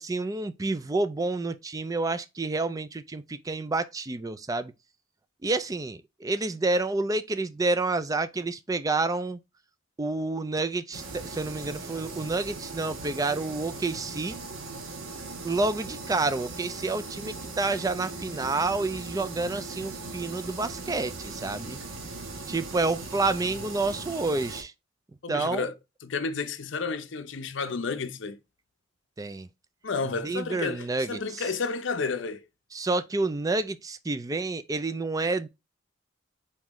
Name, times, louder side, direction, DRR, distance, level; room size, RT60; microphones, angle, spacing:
voice 1, 0.0-4.7 5.4-9.4 10.0-14.4 15.4-21.8 22.5-24.7 25.3-25.7 29.2-29.5 30.2-31.4 32.7-35.5, right 3 dB, 15° right, 0.3 m, -29 dB
sound 1, 10.9-24.6, right 3 dB, 85° right, 1.1 m, -39 dB
voice 2, 25.2-25.7 26.0-28.4 29.8-32.4, left 4 dB, 60° left, 0.6 m, -31 dB
4.3 x 3.8 x 3.0 m
head